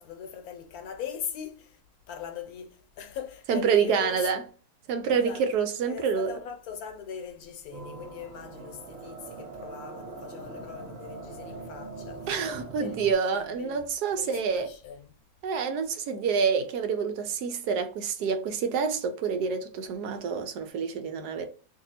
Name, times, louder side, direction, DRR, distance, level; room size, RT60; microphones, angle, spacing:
voice 1, 0.0-1.8 2.1-4.3 5.2-5.4 5.9-12.3 12.8-13.0 13.3-13.9 14.1-15.1, left 7 dB, 75° left, 1.1 m, -40 dB
voice 2, 3.5-4.4 4.9-6.3 12.3-14.7 15.4-21.5, right 6 dB, 90° right, 1.3 m, -27 dB
sound 1, 7.7-13.1, right 3 dB, 55° right, 1.3 m, -42 dB
2.9 x 2.7 x 4.0 m
omnidirectional pair, 1.6 m